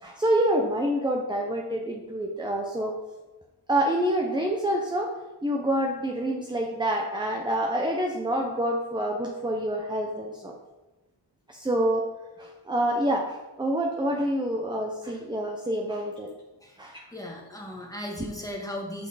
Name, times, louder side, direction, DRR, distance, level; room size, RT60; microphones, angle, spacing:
voice 1, 0.0-2.9 3.7-5.1 5.4-10.5 11.5-12.0 12.4-16.3 16.8-17.1, right 1 dB, 10° right, 1 dB, 0.8 m, -27 dB
voice 2, 17.1-19.1, left 1 dB, 5° left, -1 dB, 1.8 m, -36 dB
6.9 x 5.9 x 4.1 m, 1.1 s
cardioid pair, 75°, 46 cm